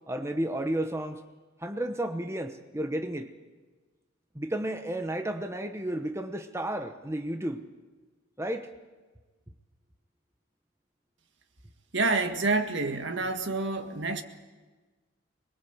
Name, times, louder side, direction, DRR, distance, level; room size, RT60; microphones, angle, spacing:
voice 1, 0.1-1.2 1.6-3.3 4.3-7.6 8.4-8.7, right 1 dB, 15° right, 6 dB, 1.0 m, -32 dB
voice 2, 11.9-14.2, right 3 dB, 65° right, 7 dB, 1.8 m, -28 dB
25.0 x 21.0 x 8.0 m, 1.3 s
head